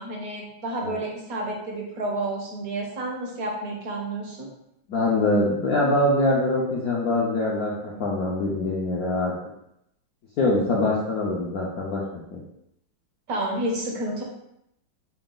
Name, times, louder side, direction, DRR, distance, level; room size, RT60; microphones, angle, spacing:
voice 1, 0.0-4.5 13.3-14.2, right 1 dB, 60° right, 0 dB, 1.1 m, -30 dB
voice 2, 4.9-9.3 10.4-12.4, left 2 dB, 65° left, -5 dB, 0.9 m, -24 dB
5.7 x 2.3 x 3.7 m, 0.80 s
omnidirectional pair, 2.2 m